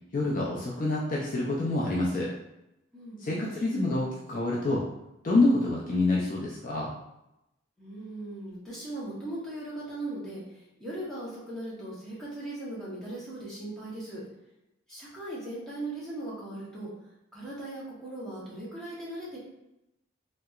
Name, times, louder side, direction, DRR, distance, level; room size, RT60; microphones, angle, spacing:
voice 1, 0.1-2.3 3.2-4.8 5.2-6.9, left 2 dB, 40° left, -4 dB, 0.4 m, -27 dB
voice 2, 2.9-3.6 7.8-10.4 10.8-14.2 14.9-16.9 17.3-19.4, right 1 dB, 5° left, -8 dB, 0.9 m, -38 dB
3.2 x 2.9 x 2.3 m, 0.90 s
head